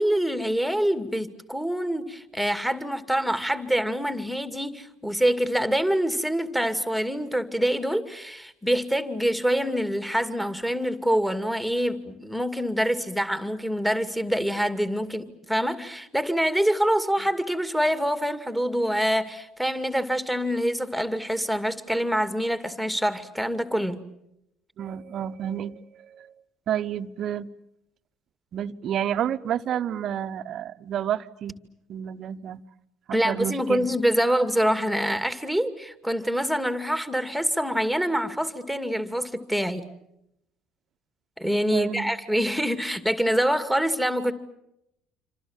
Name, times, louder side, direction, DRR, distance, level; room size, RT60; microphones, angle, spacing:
voice 1, 0.0-24.0 33.1-39.9 41.4-44.3, equal, ahead, 2.4 m, -25 dB
voice 2, 24.8-26.3 26.7-27.5 28.5-31.6 31.9-32.6 33.1-33.9 41.7-42.1, right 10 dB, 50° right, 1.0 m, -30 dB
27.5 x 26.5 x 7.4 m
hypercardioid pair, 60°, 0 cm